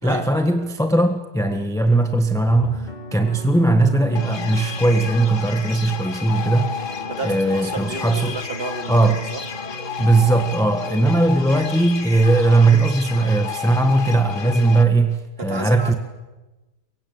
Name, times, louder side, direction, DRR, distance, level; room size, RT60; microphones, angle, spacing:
voice 1, 0.0-6.8 7.2-8.4 8.9-9.2 10.0-15.9, right 2 dB, ahead, 1.3 m, -19 dB
sound 1, 2.4-10.5, right 1 dB, 25° left, 2.7 m, -37 dB
sound 2, 4.1-14.8, left 6 dB, 50° left, 1.6 m, -32 dB
voice 2, 7.0-9.0 9.3-9.4 10.8-11.0 15.4-16.0, right 3 dB, 35° right, 2.7 m, -31 dB
24.0 x 23.5 x 8.8 m
omnidirectional pair, 1.8 m